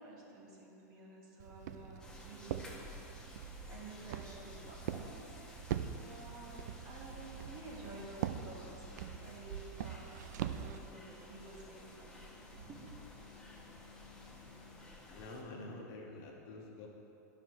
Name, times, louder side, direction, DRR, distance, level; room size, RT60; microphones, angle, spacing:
voice 1, 0.0-2.9 3.7-10.0 10.4-12.8, right 2 dB, 40° right, -3 dB, 1.7 m, -52 dB
Walk footsteps, 1.4-10.8, right 10 dB, 70° right, 0.4 m, -43 dB
sound 1, 2.0-15.4, left 2 dB, 5° left, 1.1 m, -54 dB
sound 2, 5.5-14.9, left 6 dB, 75° left, 0.6 m, -61 dB
voice 2, 15.1-16.9, left 2 dB, 50° left, 0 dB, 1.2 m, -47 dB
9.9 x 6.0 x 3.1 m, 2.9 s
hypercardioid pair, 115°, 10 cm